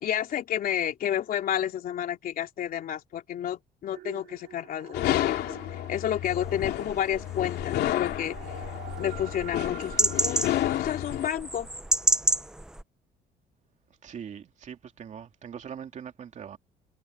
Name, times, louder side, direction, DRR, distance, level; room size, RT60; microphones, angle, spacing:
voice 1, 0.0-8.4 9.0-11.7, left 10 dB, 60° left, 3.3 m, -31 dB
sound 1, 3.9-10.8, right 13 dB, 75° right, 4.6 m, -47 dB
sound 2, 4.9-11.3, left 14 dB, 75° left, 2.7 m, -31 dB
sound 3, 6.3-12.8, right 1 dB, 5° right, 0.5 m, -31 dB
voice 2, 14.0-16.6, right 8 dB, 45° right, 2.7 m, -41 dB
cardioid pair, 110°, 17 cm